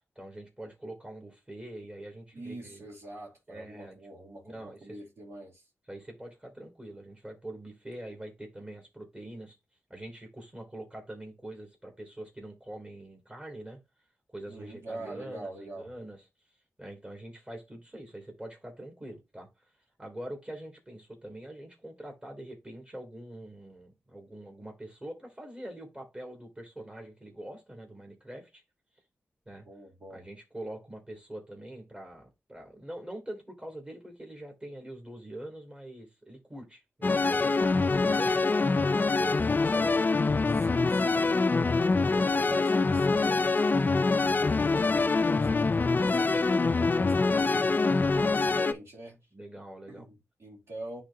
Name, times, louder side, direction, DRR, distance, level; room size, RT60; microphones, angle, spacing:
voice 1, 0.1-2.8 3.5-4.0 4.4-5.0 5.9-9.5 9.9-13.8 14.3-16.2 16.8-19.7 20.0-28.6 29.5-29.7 30.1-37.6 38.0-41.7 49.3-50.1, right 1 dB, 20° right, 2.8 m, -44 dB
voice 2, 2.3-5.7 14.5-15.9 29.6-30.3 37.8-38.3 40.5-49.2 49.9-51.0, right 1 dB, 65° right, 2.7 m, -45 dB
sound 1, 37.0-48.7, left 3 dB, 40° left, 0.4 m, -25 dB
10.5 x 3.7 x 2.7 m
cardioid pair, 50°, 5 cm